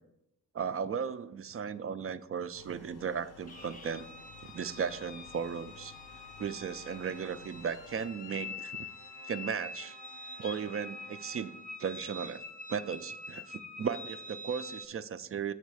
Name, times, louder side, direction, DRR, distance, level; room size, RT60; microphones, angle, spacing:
voice 1, 0.5-4.1 4.4-5.9 6.4-8.9 9.3-10.0 10.4-11.5 11.8-12.4 12.7-15.5, right 7 dB, 40° right, 14 dB, 0.4 m, -36 dB
sound 1, 2.5-8.1, left 7 dB, 85° left, 0.6 m, -56 dB
sound 2, 3.4-11.9, right 6 dB, 90° right, 0.5 m, -59 dB
sound 3, 3.5-14.9, left 3 dB, 20° left, 0.6 m, -46 dB
7.3 x 3.2 x 6.2 m, 0.85 s
cardioid pair, 50°, 38 cm